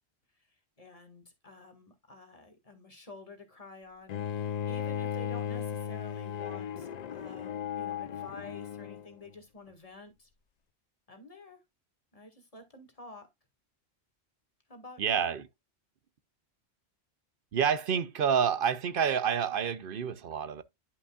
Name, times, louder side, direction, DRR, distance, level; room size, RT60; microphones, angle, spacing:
voice 1, 0.8-10.3 11.1-11.6 12.1-13.3 14.7-15.3, left 2 dB, 35° left, 1.8 m, -50 dB
Bowed string instrument, 4.1-9.1, left 9 dB, 55° left, 0.5 m, -36 dB
voice 2, 15.0-15.5 17.5-20.6, right 7 dB, 60° right, 0.7 m, -28 dB
11.0 x 5.2 x 2.3 m
omnidirectional pair, 1.1 m